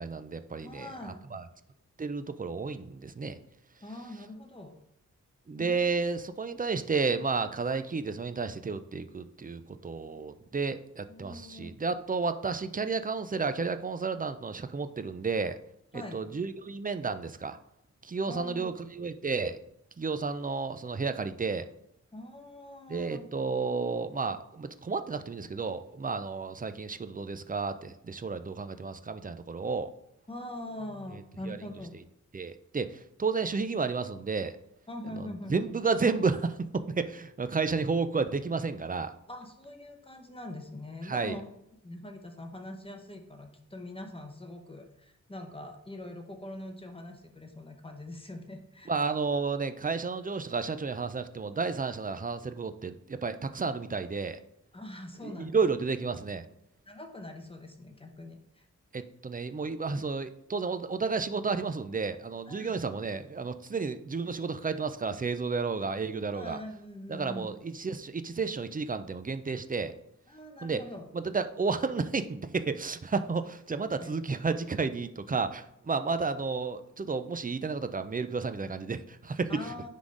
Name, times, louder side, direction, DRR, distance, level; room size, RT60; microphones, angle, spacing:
voice 1, 0.0-0.9 1.3-1.4 2.0-3.4 5.5-15.6 15.9-17.6 18.0-19.6 20.0-21.7 22.9-29.9 31.5-31.6 32.3-34.5 35.2-39.1 41.0-41.4 48.9-54.4 55.2-56.4 58.9-66.6 67.1-69.9 70.6-70.8 71.1-79.7, right 4 dB, 25° right, 10 dB, 0.4 m, -32 dB
voice 2, 0.6-1.3 3.8-4.7 5.6-6.0 11.1-11.7 15.9-16.2 18.3-18.7 22.1-23.3 30.3-31.9 34.9-35.7 39.3-41.5 41.8-48.9 54.7-55.6 56.9-58.7 62.5-62.7 66.3-67.5 70.3-71.1 73.7-74.1 79.5-79.9, left 1 dB, 15° left, 3 dB, 1.0 m, -43 dB
9.7 x 3.8 x 3.8 m, 0.78 s
wide cardioid pair, 100°, 31 cm